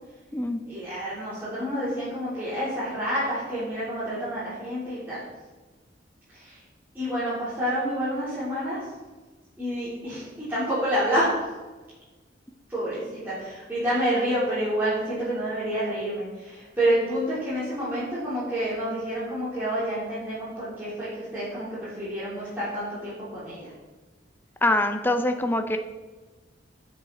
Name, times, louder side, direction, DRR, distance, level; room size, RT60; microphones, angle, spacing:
voice 1, 0.7-5.2 6.4-6.6 6.9-8.8 9.6-11.4 12.7-23.7, equal, 10° right, -13 dB, 3.8 m, -28 dB
voice 2, 24.6-25.8, left 1 dB, 10° left, 7 dB, 0.6 m, -24 dB
16.5 x 6.4 x 4.2 m, 1.2 s
head